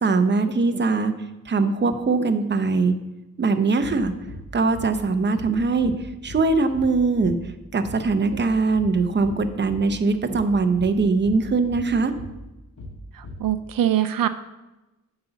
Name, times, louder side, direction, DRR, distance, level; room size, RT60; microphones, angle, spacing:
voice 1, 0.0-1.1 1.5-2.9 3.4-4.1 4.5-7.4 7.7-12.1, right 4 dB, 35° right, 8 dB, 0.7 m, -21 dB
sound 1, 3.8-4.0 4.3-4.5 4.7-4.9 5.3-5.5 5.8-6.0 6.3-6.5 6.7-6.9 7.2-7.4 7.8-8.0 8.3-8.5 8.7-8.9 9.2-9.4 9.7-9.9 10.3-10.5 10.8-11.0 11.2-11.4 11.7-11.9 12.1-12.3 12.8-13.0 13.2-13.4, left 2 dB, 65° left, 2.1 m, -38 dB
voice 2, 13.1-14.3, right 11 dB, 80° right, 12 dB, 0.5 m, -23 dB
9.7 x 4.0 x 6.8 m, 1.0 s
wide cardioid pair, 110°, 33 cm